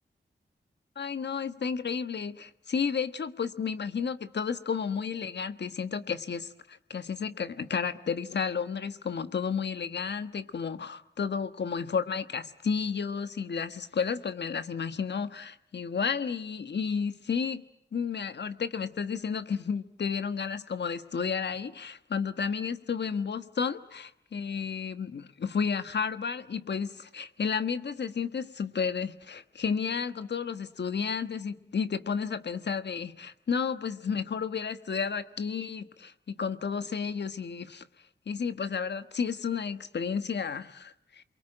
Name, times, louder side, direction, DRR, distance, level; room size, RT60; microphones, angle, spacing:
voice 1, 1.0-17.6 17.9-37.8 38.3-41.2, left 6 dB, 70° left, 11 dB, 1.3 m, -32 dB
29.0 x 23.0 x 8.9 m, 0.73 s
cardioid pair, 50°, 18 cm